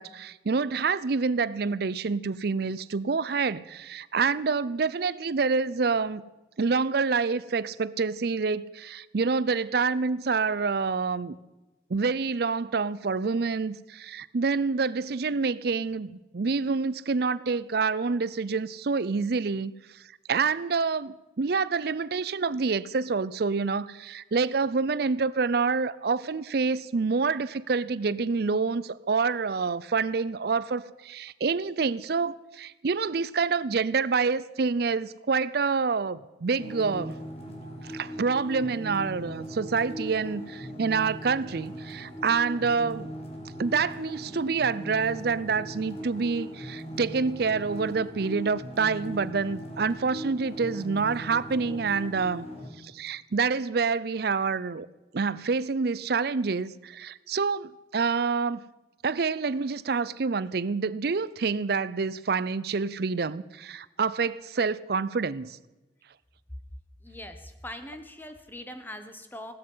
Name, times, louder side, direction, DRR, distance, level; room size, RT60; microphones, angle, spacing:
voice 1, 0.0-6.2 6.6-11.4 11.9-19.7 20.3-37.2 37.8-43.1 43.6-52.5 52.8-54.9 55.1-58.6 59.0-65.6, right 4 dB, 55° right, 0.5 m, -27 dB
sound 1, 36.6-52.7, equal, 35° left, 2.4 m, -39 dB
voice 2, 67.0-69.5, left 1 dB, 10° left, 1.1 m, -41 dB
16.5 x 12.5 x 5.6 m
head